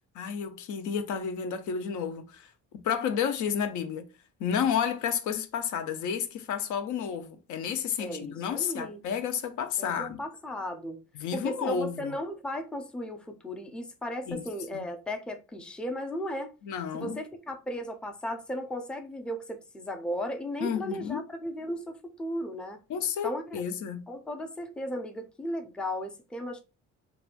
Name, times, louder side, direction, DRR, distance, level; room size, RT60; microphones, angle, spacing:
voice 1, 0.1-4.1 4.4-10.2 11.2-12.1 14.3-14.4 14.7-14.9 16.6-17.2 20.6-21.2 22.9-24.1, left 7 dB, 75° left, 0.5 m, -31 dB
voice 2, 8.0-9.0 9.8-11.0 11.3-16.5 16.9-22.8 23.2-23.4 24.1-26.6, equal, 5° left, 0.4 m, -35 dB
2.9 x 2.3 x 2.4 m
cardioid pair, 90°, 30 cm